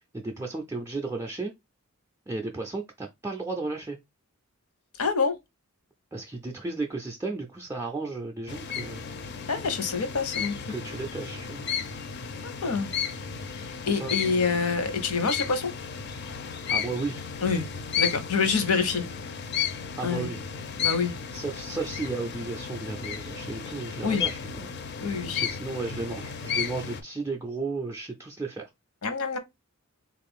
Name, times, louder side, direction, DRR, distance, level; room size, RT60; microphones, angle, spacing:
voice 1, 0.1-1.5 2.3-4.0 6.1-9.0 10.7-11.6 13.9-14.6 16.7-17.2 20.0-20.4 21.3-24.7 25.4-28.7, right 3 dB, 15° right, 0.3 m, -34 dB
voice 2, 5.0-5.4 9.5-10.6 12.4-12.9 13.6-15.7 17.4-17.6 18.0-19.0 20.0-20.3 20.8-21.1 24.0-24.2 25.0-25.4 29.0-29.4, left 5 dB, 80° left, 0.8 m, -26 dB
sound 1, 8.5-27.0, left 7 dB, 50° left, 0.4 m, -34 dB
3.7 x 2.4 x 3.4 m
head